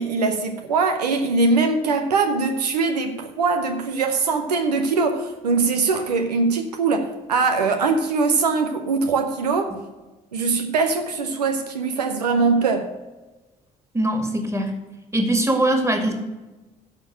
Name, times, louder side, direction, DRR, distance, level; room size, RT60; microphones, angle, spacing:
voice 1, 0.0-9.7 10.3-12.9, right 4 dB, 90° right, 6 dB, 0.8 m, -22 dB
voice 2, 13.9-14.7 15.1-16.1, right 1 dB, 15° right, 5 dB, 2.1 m, -21 dB
11.5 x 4.5 x 7.3 m, 1.1 s
hypercardioid pair, 55°, 20 cm